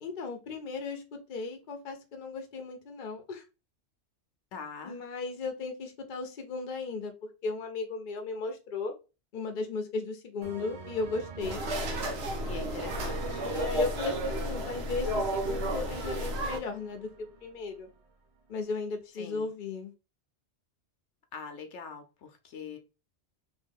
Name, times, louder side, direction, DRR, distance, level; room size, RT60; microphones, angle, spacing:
voice 1, 0.0-3.4 4.8-8.9 9.3-11.6 13.4-17.9 18.5-19.9, left 4 dB, 50° left, 0.8 m, -36 dB
voice 2, 4.5-5.0 12.5-13.5 19.2-19.5 21.3-22.8, left 5 dB, 85° left, 1.0 m, -43 dB
sound 1, 10.4-18.0, right 5 dB, 45° right, 0.5 m, -44 dB
sound 2, 11.4-16.6, equal, 65° right, 1.1 m, -32 dB
3.1 x 2.5 x 3.4 m
omnidirectional pair, 1.2 m